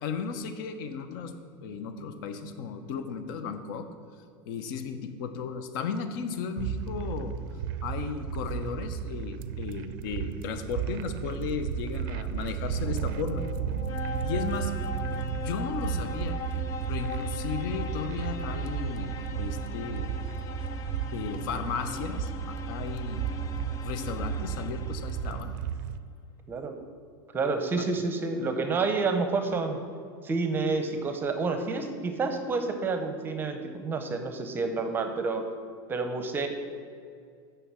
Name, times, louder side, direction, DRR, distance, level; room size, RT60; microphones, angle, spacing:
voice 1, 0.0-1.3 1.6-3.9 4.5-7.3 7.8-13.5 14.2-14.7 15.3-16.4 16.9-20.1 21.1-23.3 23.8-25.5 27.8-27.9, left 6 dB, 65° left, 8 dB, 0.9 m, -35 dB
sound 1, 6.6-26.0, right 8 dB, 60° right, 0.4 m, -34 dB
sound 2, 12.7-25.5, left 6 dB, 25° left, 0.5 m, -40 dB
voice 2, 27.3-29.8 30.2-35.4 35.9-36.5, right 4 dB, 15° right, 6 dB, 0.7 m, -29 dB
6.8 x 5.9 x 7.4 m, 2.3 s
supercardioid pair, 160°, 12 cm